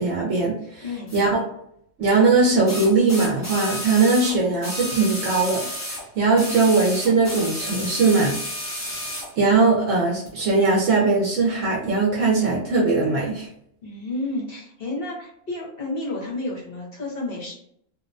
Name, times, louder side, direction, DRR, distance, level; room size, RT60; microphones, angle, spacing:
voice 1, 0.0-0.8 1.1-1.4 2.0-5.6 5.9-8.4 8.9-9.0 9.4-13.5, right 3 dB, 75° right, -4 dB, 1.0 m, -20 dB
voice 2, 0.8-1.1 13.8-17.5, left 2 dB, 50° left, -4 dB, 1.0 m, -31 dB
sound 1, 1.1-1.2 2.7-6.1 6.4-9.3 10.3-10.4, left 1 dB, 15° left, 0.7 m, -31 dB
2.7 x 2.1 x 2.5 m, 0.70 s
omnidirectional pair, 1.3 m